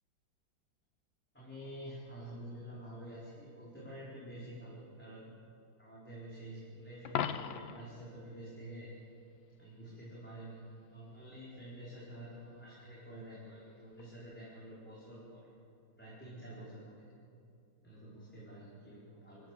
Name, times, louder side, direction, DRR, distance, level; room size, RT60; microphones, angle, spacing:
voice 1, 1.3-5.3 5.8-8.9 9.6-10.6 10.9-15.5 16.0-17.0 17.8-19.5, right 1 dB, 5° left, -8 dB, 4.7 m, -48 dB
Coin (dropping), 7.0-7.9 14.0-14.2, left 9 dB, 75° left, 1.6 m, -37 dB
27.5 x 15.5 x 7.6 m, 2.5 s
omnidirectional pair, 2.2 m